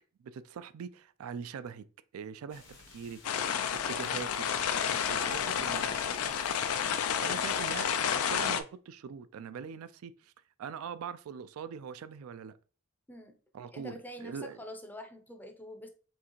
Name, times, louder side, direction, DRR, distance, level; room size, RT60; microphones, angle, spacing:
voice 1, 0.2-1.8 2.1-3.2 3.9-4.5 5.1-6.0 7.2-10.3 10.6-12.5 13.5-14.6, right 7 dB, 75° right, 0.3 m, -42 dB
sound 1, 2.5-8.1, left 3 dB, 65° left, 1.0 m, -54 dB
sound 2, 3.2-8.6, left 8 dB, 80° left, 0.4 m, -30 dB
voice 2, 7.1-7.7 13.1-13.4 13.7-15.9, left 1 dB, 10° left, 0.5 m, -46 dB
4.6 x 3.3 x 3.0 m
head